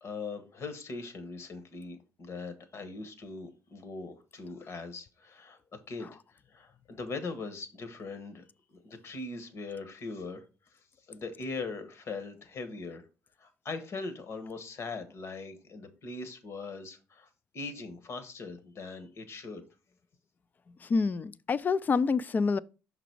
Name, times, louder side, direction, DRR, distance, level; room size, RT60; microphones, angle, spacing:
voice 1, 0.0-5.6 5.9-8.4 8.7-10.4 10.7-10.8 11.1-13.0 13.4-19.6, left 3 dB, 55° left, 1.3 m, -41 dB
voice 2, 20.8-22.6, left 4 dB, 35° left, 0.4 m, -27 dB
6.1 x 4.0 x 4.5 m
cardioid pair, 105°, 6 cm